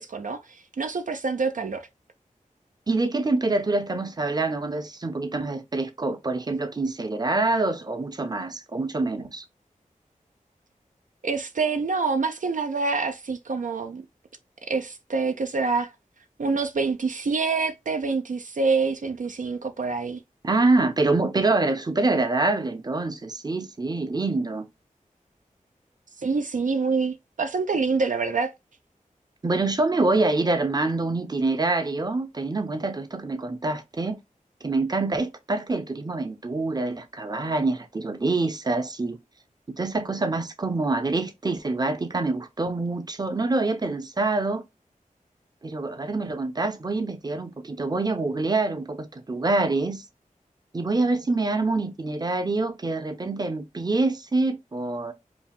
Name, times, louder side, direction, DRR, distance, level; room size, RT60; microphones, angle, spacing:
voice 1, 0.0-1.9 11.2-14.0 14.7-15.9 16.4-20.2 26.2-28.5, right 4 dB, 65° right, 0.5 m, -26 dB
voice 2, 2.9-9.4 20.4-24.7 29.4-34.2 34.6-39.2 39.8-44.6 45.6-50.0 50.7-55.1, right 3 dB, 30° right, 0.7 m, -26 dB
4.9 x 2.2 x 3.5 m
wide cardioid pair, 85°, 14 cm